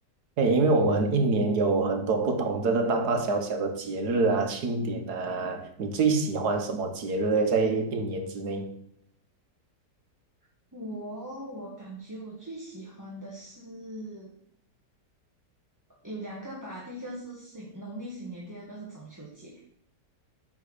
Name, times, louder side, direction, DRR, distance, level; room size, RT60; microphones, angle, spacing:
voice 1, 0.4-8.7, right 3 dB, 65° right, 1.7 m, -26 dB
voice 2, 10.7-14.4 16.0-19.6, right 1 dB, 10° right, 1.5 m, -40 dB
9.1 x 4.5 x 6.6 m
omnidirectional pair, 1.8 m